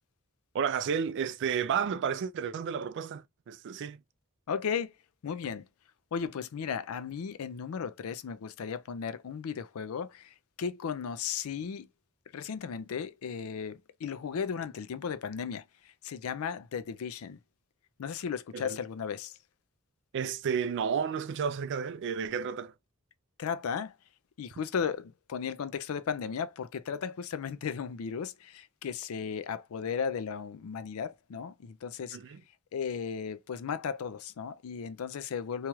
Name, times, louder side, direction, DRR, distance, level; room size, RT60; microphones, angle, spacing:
voice 1, 0.5-4.0 18.5-18.8 20.1-22.7 32.1-32.4, right 7 dB, 55° right, 0.3 m, -32 dB
voice 2, 4.5-4.9 5.2-5.6 6.1-10.3 10.6-11.9 12.3-15.6 16.0-17.4 18.0-19.3 23.4-23.9 24.4-32.2 32.7-35.7, left 6 dB, 70° left, 0.4 m, -35 dB
2.9 x 2.4 x 2.9 m
head